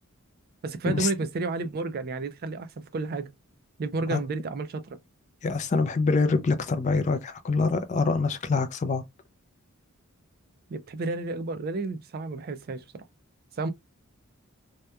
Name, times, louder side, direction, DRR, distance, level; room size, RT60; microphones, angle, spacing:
voice 1, 0.6-3.3 3.8-5.0 10.7-13.1 13.6-13.7, right 3 dB, 45° right, 0.3 m, -31 dB
voice 2, 5.4-9.0, left 4 dB, 35° left, 0.3 m, -25 dB
2.8 x 2.2 x 2.2 m
head